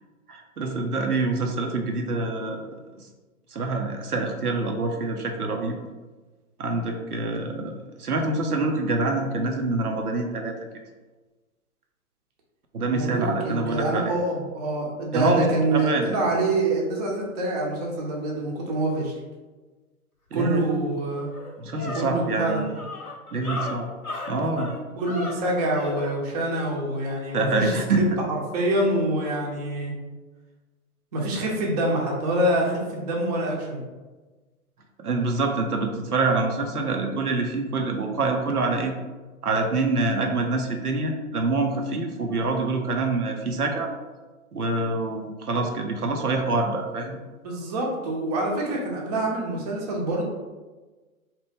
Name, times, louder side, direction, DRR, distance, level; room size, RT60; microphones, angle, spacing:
voice 1, 0.3-3.1 3.5-5.8 6.6-10.5 12.7-14.1 15.1-15.4 15.7-16.1 20.3-20.7 21.6-22.7 23.3-23.9 24.3-24.7 27.3-28.0 35.0-39.0 39.4-43.9 44.5-47.2, right 3 dB, 90° right, 3 dB, 0.6 m, -26 dB
voice 2, 12.9-19.1 20.3-21.3 21.9-22.6 25.0-28.0 28.5-29.9 31.1-33.8 47.4-50.3, right 1 dB, 30° right, -2 dB, 0.6 m, -26 dB
sound 1, 20.7-20.8 21.1-26.1, left 2 dB, 85° left, 0.8 m, -35 dB
2.8 x 2.1 x 3.4 m, 1.3 s
figure-of-eight pair, 115°, 43 cm